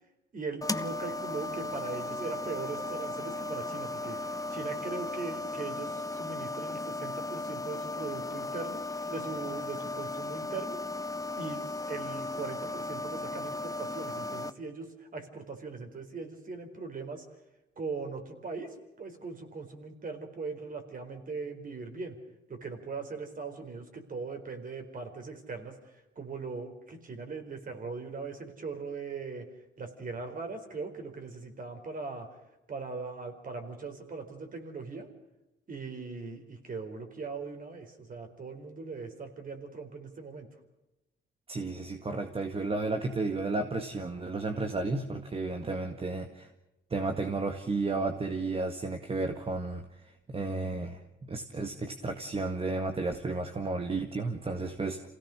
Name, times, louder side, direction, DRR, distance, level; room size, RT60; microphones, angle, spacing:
voice 1, 0.3-10.8 11.4-17.2 17.8-22.2 22.5-29.5 29.8-32.3 32.7-35.1 35.7-40.5, right 4 dB, 45° right, 5 dB, 4.6 m, -40 dB
sound 1, 0.6-14.5, left 2 dB, 15° left, 1.2 m, -36 dB
voice 2, 41.5-46.5 46.9-55.1, right 3 dB, 30° right, 6 dB, 1.8 m, -33 dB
27.5 x 17.0 x 6.6 m, 0.97 s
cardioid pair, 90°, 20 cm